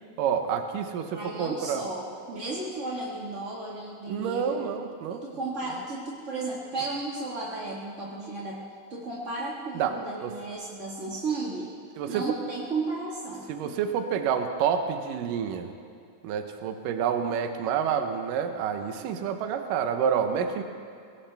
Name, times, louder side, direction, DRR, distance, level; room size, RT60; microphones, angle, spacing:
voice 1, 0.2-1.8 4.1-5.2 9.7-9.9 10.2-10.3 12.0-12.2 13.5-15.7 16.2-20.6, right 7 dB, 75° right, 6 dB, 2.5 m, -28 dB
voice 2, 1.1-4.6 5.1-8.6 8.9-11.7 12.1-13.8, right 3 dB, 35° right, -5 dB, 1.3 m, -34 dB
23.5 x 18.0 x 3.5 m, 2.4 s
omnidirectional pair, 4.1 m